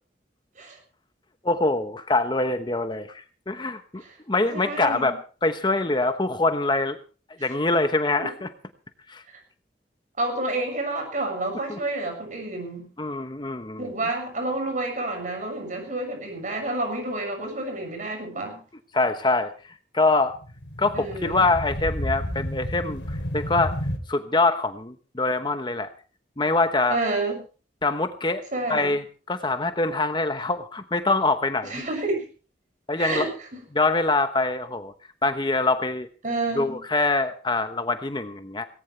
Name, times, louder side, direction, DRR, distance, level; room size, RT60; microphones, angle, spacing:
voice 1, 1.4-7.0 7.4-8.5 9.1-9.2 11.7-11.8 13.0-13.9 18.9-19.5 19.9-20.3 20.8-23.8 24.1-25.9 26.4-27.0 27.8-28.4 28.7-31.8 32.9-33.3 33.7-34.9 35.2-36.1 36.5-38.7, left 3 dB, 25° left, 9 dB, 1.0 m, -24 dB
voice 2, 4.4-5.1 8.2-8.3 9.3-9.4 10.2-12.9 13.8-18.6 20.9-21.4 26.9-27.3 28.5-29.0 31.6-32.2 33.0-33.3 36.2-36.8, right 2 dB, 45° right, 4 dB, 6.7 m, -29 dB
sound 1, 20.3-24.0, equal, 85° left, 3.1 m, -31 dB
18.5 x 18.0 x 3.3 m, 0.36 s
head